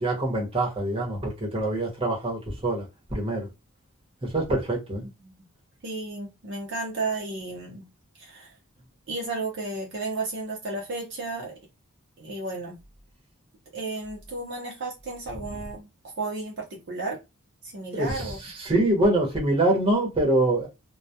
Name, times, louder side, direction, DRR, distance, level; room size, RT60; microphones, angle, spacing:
voice 1, 0.0-2.8 3.1-3.5 4.2-5.0 17.9-20.7, right 1 dB, 25° right, 0.8 m, -25 dB
voice 2, 5.8-7.9 8.2-8.5 9.1-11.5 12.2-12.8 13.7-17.2 17.6-18.4, right 3 dB, 50° right, 0.6 m, -33 dB
2.2 x 2.1 x 2.7 m
head